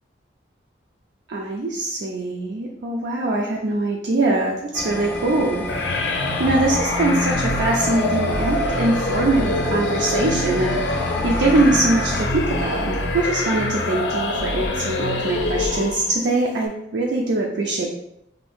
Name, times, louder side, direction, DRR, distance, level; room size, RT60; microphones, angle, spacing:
voice 1, 1.3-5.7 6.4-17.9, right 2 dB, 70° right, -1 dB, 0.4 m, -22 dB
sound 1, 4.7-12.3, left 1 dB, 10° left, 0.4 m, -31 dB
sound 2, 5.7-16.2, left 2 dB, 75° left, 0.5 m, -24 dB
2.6 x 2.6 x 3.5 m, 0.79 s
head